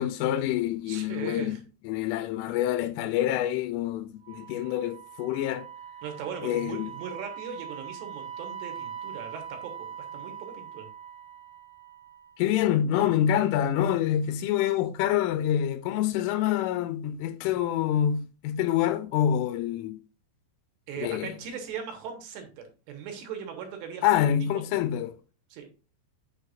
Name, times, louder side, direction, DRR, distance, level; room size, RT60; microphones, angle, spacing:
voice 1, 0.0-5.7 6.4-6.9 12.4-20.0 21.0-21.3 24.0-25.1, left 11 dB, 90° left, 3.1 m, -26 dB
voice 2, 0.9-1.6 6.0-10.9 20.9-24.1 25.5-25.7, right 7 dB, 70° right, 3.1 m, -39 dB
Wind instrument woodwind instrument, 4.2-12.5, right 8 dB, 50° left, 0.4 m, -42 dB
8.8 x 6.5 x 2.5 m
omnidirectional pair, 5.6 m